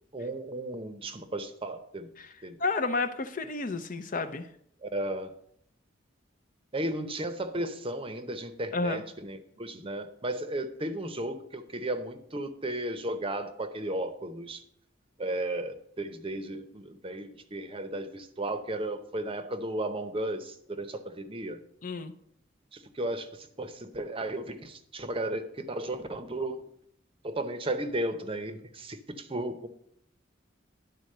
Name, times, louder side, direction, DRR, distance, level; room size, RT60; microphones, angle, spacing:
voice 1, 0.1-2.1 2.4-2.6 4.8-5.3 6.7-14.6 15.2-21.6 22.7-26.6 27.2-29.7, right 1 dB, 30° right, 9 dB, 0.7 m, -34 dB
voice 2, 2.6-4.5 8.7-9.0 21.8-22.1, left 3 dB, 45° left, 10 dB, 0.6 m, -31 dB
10.5 x 4.0 x 6.6 m, 0.70 s
head